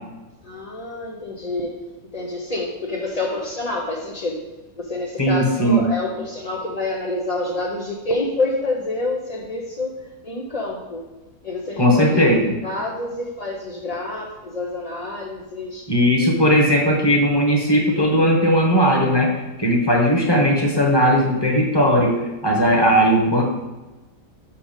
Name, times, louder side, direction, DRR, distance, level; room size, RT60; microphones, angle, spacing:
voice 1, 0.4-1.8 2.1-4.4 4.8-10.0 10.2-11.1 11.4-12.2 12.6-15.9, left 2 dB, 40° left, -2 dB, 0.5 m, -27 dB
voice 2, 5.2-5.8 11.8-12.5 15.9-19.3 19.6-23.4, equal, 15° left, 0 dB, 1.2 m, -17 dB
6.2 x 5.8 x 5.2 m, 1.1 s
omnidirectional pair, 1.8 m